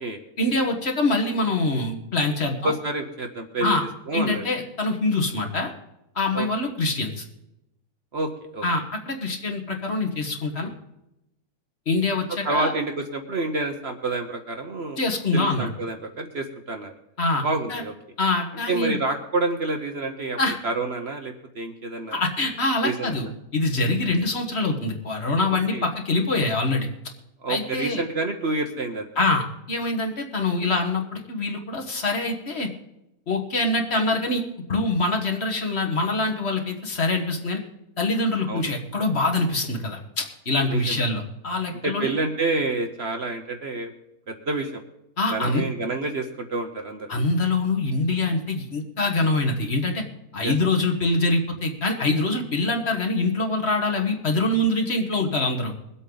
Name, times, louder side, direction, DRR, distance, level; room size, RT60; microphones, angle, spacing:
voice 1, 0.4-2.7 3.6-3.8 4.1-5.7 6.1-7.2 8.6-10.7 11.9-12.7 15.0-15.7 17.2-17.8 18.2-19.0 20.4-20.6 22.1-26.9 27.5-28.0 29.1-32.7 33.3-34.4 34.7-37.6 38.0-42.1 45.2-45.6 47.1-50.0 50.3-55.7, left 2 dB, 45° left, 2 dB, 1.7 m, -24 dB
voice 2, 2.6-3.8 4.1-4.4 6.3-6.5 8.1-8.6 12.4-15.0 15.3-16.9 17.4-17.9 18.7-20.4 20.6-22.2 22.8-23.2 25.7-25.9 27.4-29.1 38.5-38.7 40.7-41.0 41.8-43.9 44.3-44.8 45.3-47.1 50.4-50.5, right 2 dB, 50° right, 5 dB, 1.1 m, -28 dB
22.5 x 8.2 x 3.9 m, 0.87 s
omnidirectional pair, 1.6 m